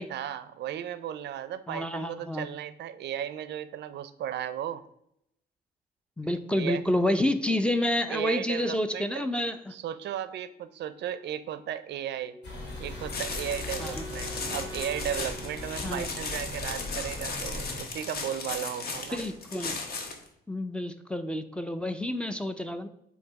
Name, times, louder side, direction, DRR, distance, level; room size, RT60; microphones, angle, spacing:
voice 1, 0.0-4.8 6.5-6.8 7.5-7.6 8.1-9.2 9.7-12.4 12.8-19.2, right 10 dB, 80° right, 14 dB, 0.5 m, -35 dB
voice 2, 1.7-2.5 6.2-9.7 13.8-14.0 15.8-16.1 19.1-19.7 20.5-22.9, left 1 dB, 5° left, 5 dB, 0.3 m, -29 dB
Wind instrument woodwind instrument, 12.2-17.3, equal, 25° left, 1.4 m, -46 dB
sound 1, 12.4-17.8, left 2 dB, 80° left, 2.1 m, -39 dB
sound 2, 13.1-20.3, left 4 dB, 60° left, 1.0 m, -36 dB
7.8 x 2.7 x 4.6 m, 0.76 s
wide cardioid pair, 160°, 18 cm